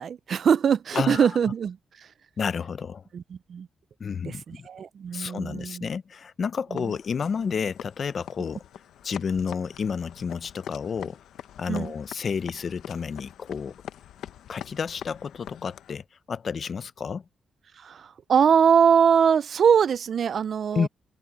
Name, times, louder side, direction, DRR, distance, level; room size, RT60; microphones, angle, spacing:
voice 1, 0.0-2.1 3.1-3.7 4.2-5.9 6.7-6.9 11.7-11.9 17.8-20.9, right 7 dB, 50° right, 0.4 m, -22 dB
voice 2, 0.9-1.3 2.4-3.0 4.0-4.7 5.1-8.6 9.0-11.2 11.6-13.7 14.5-17.2 20.7-20.9, left 6 dB, 40° left, 0.5 m, -30 dB
sound 1, 6.8-16.0, left 10 dB, 85° left, 0.8 m, -44 dB
cardioid pair, 140°, 0 cm